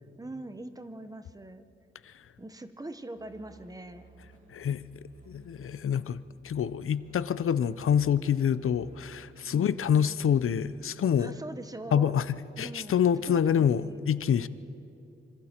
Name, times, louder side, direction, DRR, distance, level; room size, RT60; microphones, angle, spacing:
voice 1, 0.2-1.7 2.4-4.0 9.5-9.9 11.2-12.2 12.6-13.0 13.3-14.0, right 2 dB, 15° right, 0.9 m, -42 dB
Musical instrument, 3.2-10.7, right 2 dB, 40° right, 4.6 m, -56 dB
voice 2, 4.5-4.8 5.3-11.3 11.9-14.5, left 8 dB, 85° left, 0.6 m, -26 dB
26.0 x 26.0 x 4.4 m
wide cardioid pair, 150°, 21 cm